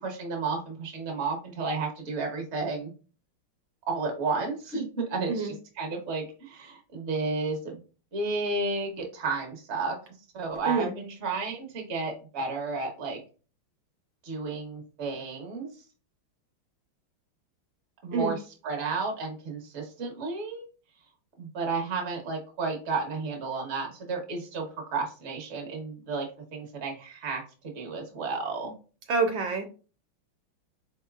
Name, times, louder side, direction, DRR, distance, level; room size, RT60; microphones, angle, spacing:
voice 1, 0.0-2.9 3.9-7.8 8.1-10.0 10.3-13.2 14.2-15.7 18.0-20.6 21.4-28.7, right 3 dB, 40° right, 2 dB, 1.1 m, -32 dB
voice 2, 29.1-29.7, right 4 dB, 75° right, 4 dB, 1.4 m, -26 dB
4.4 x 3.9 x 2.3 m, 0.36 s
omnidirectional pair, 2.2 m